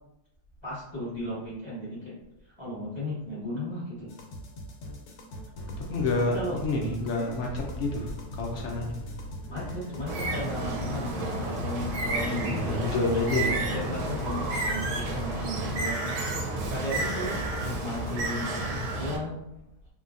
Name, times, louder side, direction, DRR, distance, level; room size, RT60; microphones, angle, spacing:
voice 1, 0.6-2.1 2.6-4.1 6.3-6.6 9.5-13.1 13.5-16.0 16.7-19.4, left 1 dB, 20° left, -8 dB, 0.9 m, -35 dB
sound 1, 4.1-18.3, left 1 dB, 85° left, 1.1 m, -40 dB
voice 2, 5.9-6.4 6.6-8.1 8.4-9.0 12.5-13.6, left 3 dB, 65° left, -1 dB, 0.7 m, -28 dB
Bird, 10.1-19.2, right 2 dB, 90° right, 1.2 m, -31 dB
3.3 x 2.2 x 2.5 m, 0.86 s
omnidirectional pair, 1.6 m